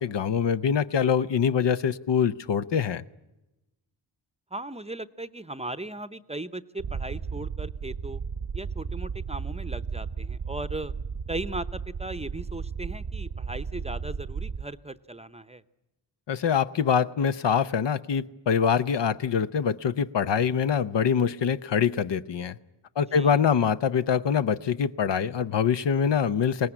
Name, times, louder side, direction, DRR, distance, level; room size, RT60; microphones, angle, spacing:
voice 1, 0.0-3.0 16.3-22.6 23.0-26.7, left 7 dB, 70° left, 12 dB, 0.8 m, -24 dB
voice 2, 4.5-8.2 8.5-10.9 11.3-15.6 23.1-23.4, right 2 dB, 15° right, 14 dB, 0.7 m, -37 dB
sound 1, 6.8-14.6, right 5 dB, 50° right, 0.8 m, -34 dB
21.0 x 18.0 x 9.9 m, 1.0 s
cardioid pair, 60°, 44 cm